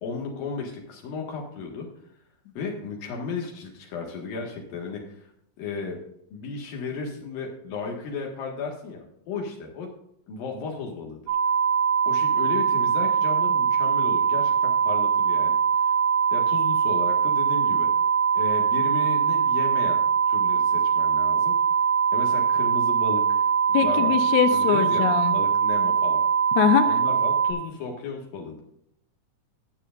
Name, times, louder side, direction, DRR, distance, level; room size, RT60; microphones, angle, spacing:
voice 1, 0.0-1.9 2.6-5.3 5.6-6.0 6.3-9.9 10.3-11.2 12.1-15.6 15.9-16.0 16.3-17.9 18.3-20.0 20.3-21.5 22.1-23.5 23.8-26.2 26.8-28.6, left 4 dB, 90° left, 0 dB, 3.5 m, -34 dB
sound 1, 11.3-27.5, right 7 dB, 80° right, 4.0 m, -22 dB
voice 2, 23.7-25.3 26.6-26.9, left 9 dB, 75° left, 8 dB, 2.0 m, -22 dB
19.0 x 7.4 x 2.5 m, 0.73 s
omnidirectional pair, 3.9 m